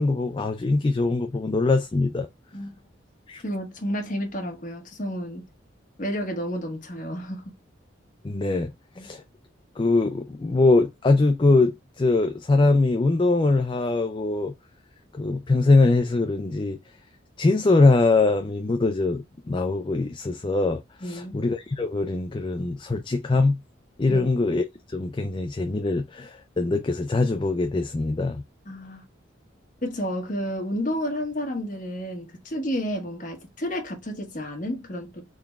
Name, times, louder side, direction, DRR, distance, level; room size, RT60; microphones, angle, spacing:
voice 1, 0.0-2.3 3.3-3.4 8.2-9.2 9.8-14.5 15.1-16.8 17.4-23.6 24.0-24.6 24.9-28.4, left 3 dB, 25° left, 0.4 m, -22 dB
voice 2, 3.4-5.4 6.0-7.5 9.0-9.1 21.0-21.4 24.1-24.3 28.6-29.0 29.8-35.2, equal, 40° left, 1.4 m, -31 dB
3.9 x 3.5 x 2.3 m
head